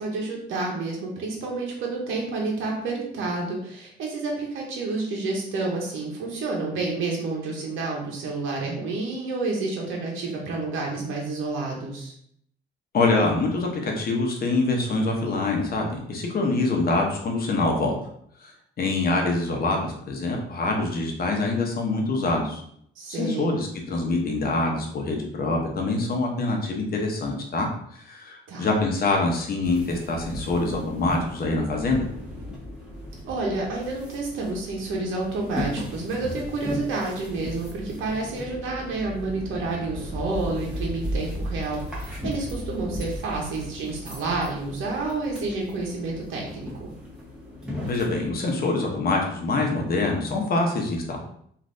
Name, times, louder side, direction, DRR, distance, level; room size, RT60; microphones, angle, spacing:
voice 1, 0.0-12.1 23.0-23.5 28.5-28.7 33.3-46.9, right 3 dB, 80° right, -1 dB, 0.8 m, -29 dB
voice 2, 12.9-17.9 18.4-18.5 18.8-22.6 23.1-32.1 47.9-51.2, left 2 dB, 50° left, 1 dB, 0.8 m, -25 dB
sound 1, 29.6-48.3, left 1 dB, 5° right, 1.0 m, -36 dB
3.2 x 2.5 x 2.6 m, 0.68 s
cardioid pair, 90°, 20 cm